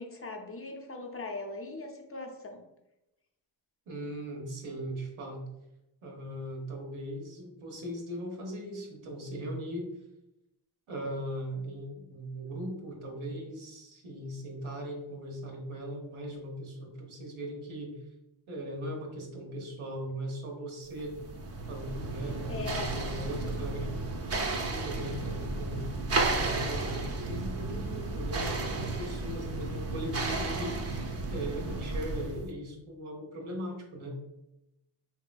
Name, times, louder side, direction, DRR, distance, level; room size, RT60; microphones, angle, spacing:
voice 1, 0.0-2.6 22.5-22.9, left 3 dB, 30° left, 2 dB, 0.6 m, -40 dB
voice 2, 3.9-5.4 6.0-9.9 10.9-18.0 18.5-21.2 21.7-25.8 26.4-30.8 31.3-34.2, equal, 80° right, 0 dB, 1.0 m, -39 dB
sound 1, 21.0-32.5, right 2 dB, 30° right, 0.5 m, -33 dB
3.1 x 2.8 x 2.2 m, 0.92 s
cardioid pair, 60°, 48 cm